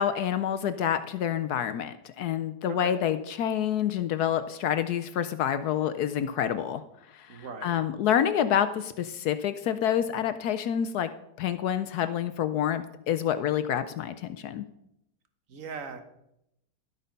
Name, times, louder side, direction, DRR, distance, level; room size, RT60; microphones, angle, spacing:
voice 1, 0.0-6.8 7.1-11.1 11.4-14.7, left 9 dB, 70° left, 11 dB, 1.0 m, -28 dB
voice 2, 7.3-7.8 15.5-16.0, right 5 dB, 50° right, 8 dB, 1.4 m, -39 dB
12.5 x 8.2 x 5.3 m, 0.81 s
omnidirectional pair, 2.0 m